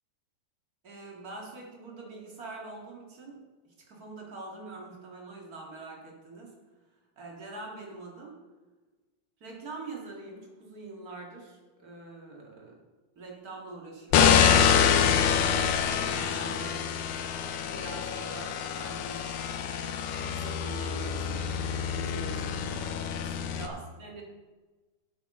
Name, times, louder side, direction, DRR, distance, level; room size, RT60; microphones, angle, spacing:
voice 1, 0.8-6.5 7.2-8.4 9.4-12.8 13.2-14.5 14.8-16.9 17.7-19.4 20.3-22.9 23.4-24.2, right 3 dB, 35° right, -2 dB, 1.9 m, -44 dB
sound 1, 14.1-23.7, left 8 dB, 85° left, 2.4 m, -26 dB
11.0 x 8.5 x 3.7 m, 1.2 s
omnidirectional pair, 3.8 m